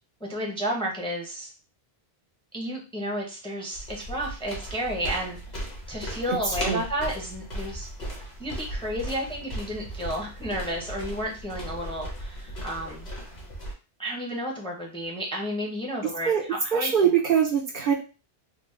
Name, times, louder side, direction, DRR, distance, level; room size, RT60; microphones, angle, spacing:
voice 1, 0.3-1.5 2.5-5.4 5.9-7.9 8.4-13.1 14.0-17.1, equal, 5° left, -1 dB, 0.6 m, -32 dB
sound 1, 3.7-13.7, equal, 45° left, 1.0 m, -37 dB
voice 2, 6.3-6.8 16.2-16.4 16.7-17.9, right 7 dB, 60° right, 1 dB, 0.7 m, -23 dB
3.5 x 2.0 x 3.1 m, 0.33 s
omnidirectional pair, 1.1 m